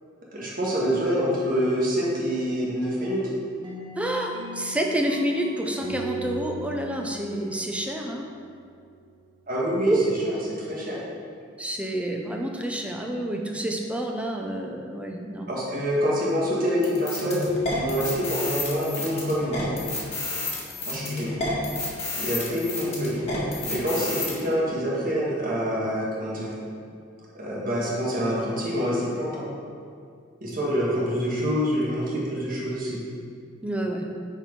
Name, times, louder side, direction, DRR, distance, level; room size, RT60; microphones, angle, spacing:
voice 1, 0.3-3.4 9.5-9.9 10.2-11.0 15.5-19.6 20.9-21.3 22.2-23.2 23.7-26.5 27.3-29.5 30.4-33.0, equal, 45° right, -5 dB, 1.8 m, -26 dB
sound 1, 3.6-8.5, right 2 dB, 25° right, 1.2 m, -38 dB
voice 2, 4.0-8.2 9.9-10.0 11.6-15.5 33.6-34.0, right 1 dB, 5° right, 1 dB, 0.6 m, -28 dB
sound 2, 16.8-24.3, left 2 dB, 35° left, 1.7 m, -30 dB
7.6 x 4.6 x 5.4 m, 2.3 s
head